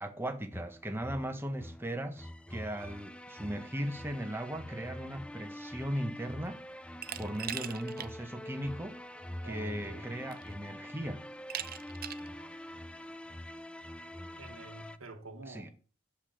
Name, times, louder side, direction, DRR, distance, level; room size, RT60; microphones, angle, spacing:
voice 1, 0.0-6.6 7.2-9.0 9.4-11.3 15.5-15.7, equal, 10° right, 1.2 m, -38 dB
sound 1, 0.5-15.0, left 1 dB, 5° left, 0.5 m, -45 dB
Glass, 7.0-8.1 8.5-8.6 9.7-9.8 10.3-10.7 11.5-12.3, right 10 dB, 45° right, 0.7 m, -40 dB
voice 2, 9.4-10.1 12.3-12.6 14.4-15.7, right 2 dB, 80° right, 1.7 m, -48 dB
12.0 x 5.4 x 7.7 m
head